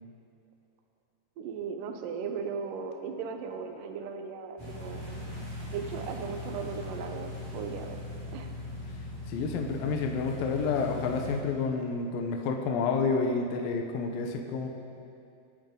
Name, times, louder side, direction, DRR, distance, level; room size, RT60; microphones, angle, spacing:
voice 1, 1.4-5.0 5.7-8.0 8.3-8.5, right 6 dB, 85° right, 4 dB, 1.9 m, -37 dB
sound 1, 4.6-11.4, left 1 dB, 10° right, 3.0 m, -40 dB
voice 2, 9.3-14.7, left 4 dB, 75° left, 3 dB, 2.2 m, -29 dB
26.0 x 9.3 x 3.9 m, 2.5 s
omnidirectional pair, 5.2 m